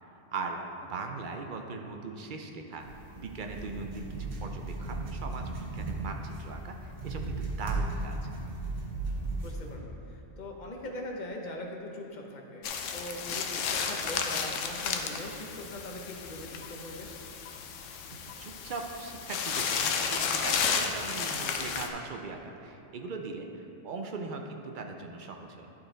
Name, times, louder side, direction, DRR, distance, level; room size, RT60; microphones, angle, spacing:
voice 1, 0.0-2.9 3.1-8.2 18.1-25.7, right 4 dB, 55° right, 3 dB, 0.6 m, -40 dB
sound 1, 2.8-9.7, right 2 dB, 90° right, 1.3 m, -36 dB
voice 2, 9.4-17.1, left 1 dB, 45° left, 1 dB, 0.8 m, -41 dB
sound 2, 12.6-21.9, left 6 dB, 90° left, 0.9 m, -33 dB
10.5 x 4.1 x 3.9 m, 2.8 s
omnidirectional pair, 1.2 m